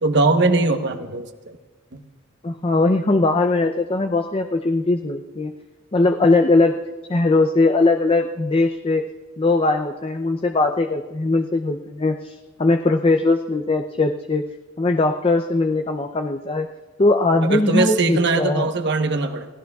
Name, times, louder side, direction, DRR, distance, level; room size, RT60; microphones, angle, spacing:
voice 1, 0.0-1.6 1.9-2.0 17.5-19.5, right 3 dB, 60° right, 7 dB, 1.0 m, -20 dB
voice 2, 2.4-5.5 5.9-6.7 7.1-9.0 9.4-14.4 14.8-16.7 17.0-18.7, left 2 dB, 30° left, 5 dB, 0.5 m, -20 dB
29.5 x 16.0 x 2.4 m, 1.2 s
head